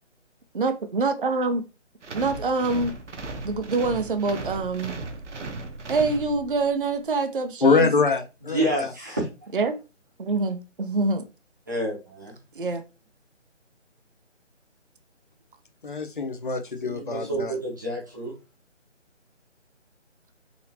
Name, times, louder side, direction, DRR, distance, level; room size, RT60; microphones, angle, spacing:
voice 1, 0.6-1.6 2.1-3.0 3.4-4.9 5.9-7.9 9.5-9.7 10.2-11.3 12.6-12.8, right 3 dB, 45° right, 0.6 m, -25 dB
sound 1, 2.0-6.7, right 2 dB, 70° right, 1.0 m, -36 dB
voice 2, 7.6-8.9 15.8-17.6, left 4 dB, 45° left, 0.8 m, -24 dB
voice 3, 8.4-9.3 11.7-12.3 16.8-18.3, right 1 dB, 15° right, 0.9 m, -29 dB
4.1 x 2.8 x 2.8 m
figure-of-eight pair, 170°, 37 cm